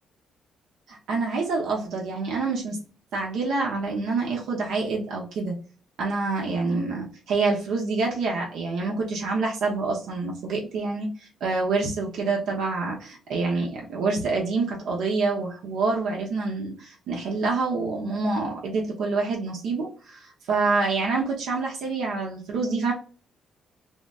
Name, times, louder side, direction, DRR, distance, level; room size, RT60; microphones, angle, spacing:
voice 1, 0.9-2.8 3.1-5.6 6.0-22.9, right 3 dB, 70° right, -2 dB, 0.8 m, -27 dB
3.9 x 2.0 x 3.6 m, 0.39 s
cardioid pair, 160°, 0 cm